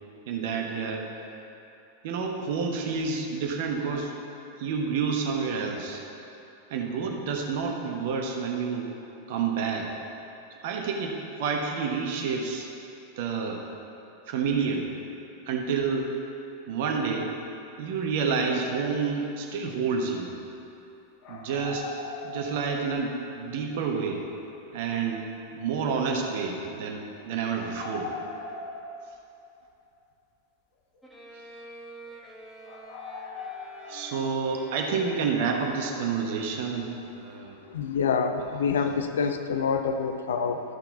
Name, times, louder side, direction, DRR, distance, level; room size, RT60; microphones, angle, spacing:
voice 1, 0.3-1.1 2.0-4.1 4.6-6.0 6.7-8.9 9.3-9.9 10.6-12.7 13.2-13.6 14.3-14.9 15.5-16.1 16.7-17.3 17.8-20.3 21.3-21.9 22.2-24.2 24.7-28.1 33.9-37.6, right 5 dB, 50° right, 2 dB, 1.1 m, -29 dB
sound 1, 21.2-23.3 23.5-23.6 27.5-29.5 29.8-29.9 31.0-31.1 31.4-31.5 32.1-32.3 32.6-34.6, left 3 dB, 45° left, 1.2 m, -39 dB
Bowed string instrument, 31.0-35.4, right 1 dB, ahead, 1.4 m, -48 dB
voice 2, 37.7-40.6, left 5 dB, 65° left, 7 dB, 0.6 m, -26 dB
13.0 x 5.8 x 4.1 m, 2.8 s
figure-of-eight pair, 90°, 0 cm